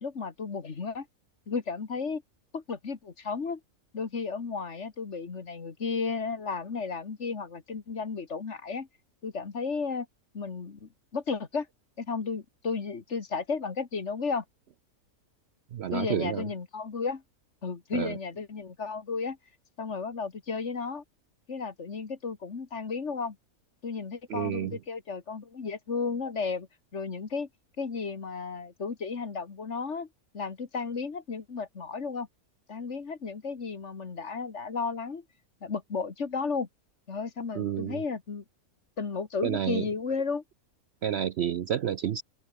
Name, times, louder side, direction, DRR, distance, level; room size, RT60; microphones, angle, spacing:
voice 1, 0.0-1.1 1.5-2.2 2.5-3.6 3.9-8.9 9.2-10.1 10.3-11.7 12.0-14.4 15.9-17.2 17.6-19.4 19.8-21.0 21.5-23.4 23.8-26.7 26.9-27.5 27.8-30.1 30.3-32.3 32.7-35.2 35.6-36.7 37.1-38.4 39.0-40.4, left 5 dB, 50° left, 2.0 m, -33 dB
voice 2, 15.7-16.4 17.9-18.1 24.3-24.7 37.6-38.0 39.4-39.8 41.0-42.2, right 9 dB, 60° right, 0.7 m, -29 dB
open air
omnidirectional pair, 1.5 m